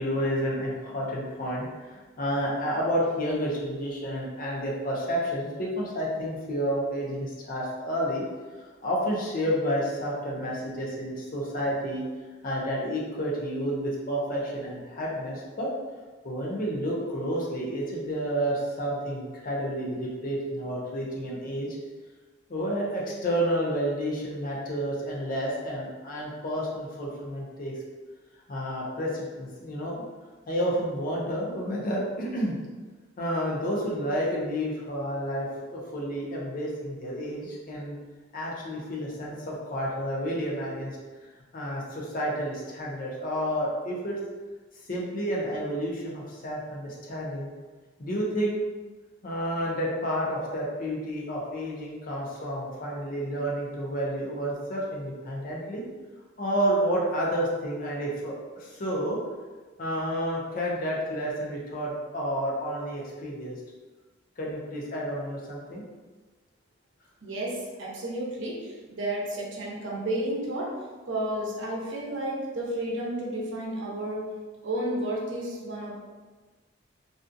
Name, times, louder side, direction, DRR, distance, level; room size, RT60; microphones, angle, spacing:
voice 1, 0.0-8.3 8.8-12.0 12.4-15.7 16.2-21.8 22.5-27.7 28.5-30.0 30.5-32.6 33.2-38.0 38.3-41.0 41.5-44.2 44.9-47.5 48.0-48.6 49.2-55.8 56.4-59.2 59.8-63.6 64.4-65.8, equal, 45° left, -3 dB, 0.6 m, -30 dB
voice 2, 67.2-70.8 71.1-74.2 74.6-75.9, right 1 dB, 70° right, -3 dB, 0.6 m, -32 dB
2.5 x 2.3 x 2.6 m, 1.3 s
head